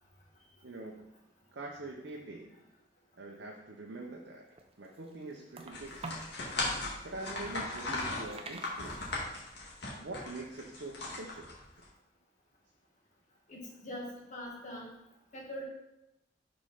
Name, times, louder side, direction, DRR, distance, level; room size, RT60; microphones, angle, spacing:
voice 1, 0.6-1.1 1.5-2.6 3.1-6.1 6.7-9.1 9.9-11.5, right 2 dB, 75° right, -1 dB, 0.7 m, -45 dB
sound 1, 4.3-6.4 6.9-9.4, right 3 dB, 35° right, 0.7 m, -47 dB
sound 2, 5.7-11.8, left 2 dB, 65° left, 1.7 m, -37 dB
voice 2, 13.5-14.9 15.3-15.6, left 1 dB, 45° left, -3 dB, 1.9 m, -42 dB
5.2 x 4.4 x 5.5 m, 0.88 s
head